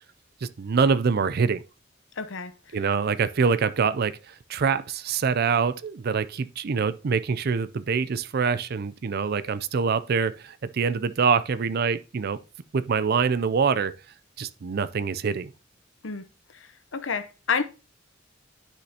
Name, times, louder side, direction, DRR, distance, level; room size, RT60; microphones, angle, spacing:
voice 1, 0.4-1.6 2.7-12.4 12.7-13.9 14.4-15.5, right 5 dB, 55° right, 0.4 m, -25 dB
voice 2, 2.2-2.5 16.0-16.3 16.9-17.6, left 5 dB, 75° left, 0.8 m, -28 dB
10.0 x 6.4 x 2.8 m
head